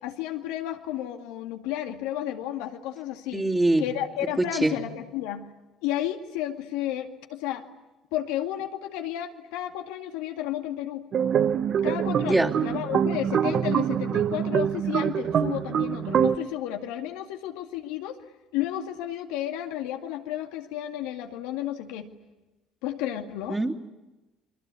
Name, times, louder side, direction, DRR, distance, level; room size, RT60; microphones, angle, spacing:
voice 1, 0.0-3.5 3.8-5.5 5.8-7.7 8.1-11.0 11.8-18.2 18.5-22.1 22.8-23.6, left 12 dB, 80° left, 5 dB, 2.2 m, -32 dB
voice 2, 3.3-3.9 4.4-4.8 12.2-12.5 23.5-23.8, right 2 dB, 15° right, 0 dB, 3.2 m, -23 dB
sound 1, 11.1-16.4, right 8 dB, 55° right, 1.0 m, -25 dB
29.5 x 23.0 x 8.4 m, 1.1 s
hypercardioid pair, 65°, 0 cm